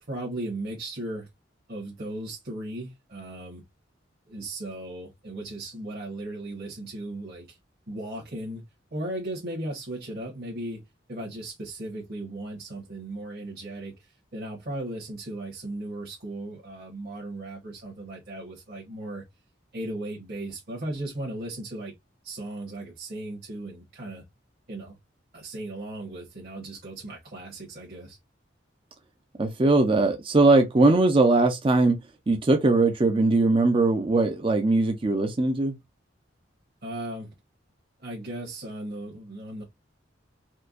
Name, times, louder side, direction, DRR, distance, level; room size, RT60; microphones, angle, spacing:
voice 1, 0.1-1.3 1.7-3.6 4.3-7.6 7.9-10.8 11.1-19.2 19.7-21.9 22.2-24.2 24.7-25.0 25.3-28.2 36.8-37.3 38.0-39.6, right 1 dB, 55° right, 1.4 m, -36 dB
voice 2, 29.4-32.0 32.3-35.8, right 2 dB, 30° right, 0.5 m, -20 dB
4.4 x 2.3 x 2.5 m
head